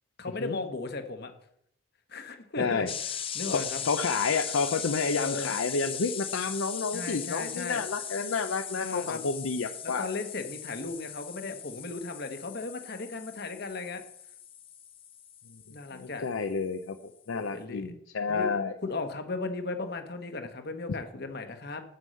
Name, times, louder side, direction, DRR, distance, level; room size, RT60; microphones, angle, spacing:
voice 1, 0.2-1.3 2.1-2.8 3.3-3.8 5.1-5.5 6.9-7.8 8.8-9.2 9.8-14.0 15.7-16.2 17.3-17.9 18.3-18.5 18.8-21.8, left 3 dB, 50° left, 7 dB, 1.2 m, -36 dB
voice 2, 2.6-2.9 3.5-10.1 15.9-17.0 17.3-18.8, left 4 dB, 70° left, 7 dB, 0.6 m, -30 dB
sound 1, 2.9-16.5, left 9 dB, 25° left, 0.6 m, -39 dB
9.6 x 5.4 x 7.7 m, 0.70 s
head